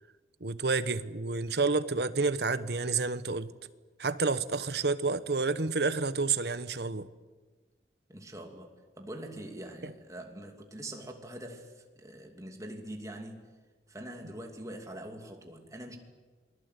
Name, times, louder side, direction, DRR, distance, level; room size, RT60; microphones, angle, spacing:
voice 1, 0.4-3.5 4.0-7.1, right 4 dB, 65° right, 1.0 m, -29 dB
voice 2, 8.1-13.4 13.9-16.0, right 1 dB, 20° right, 2.7 m, -44 dB
28.0 x 20.5 x 8.3 m
head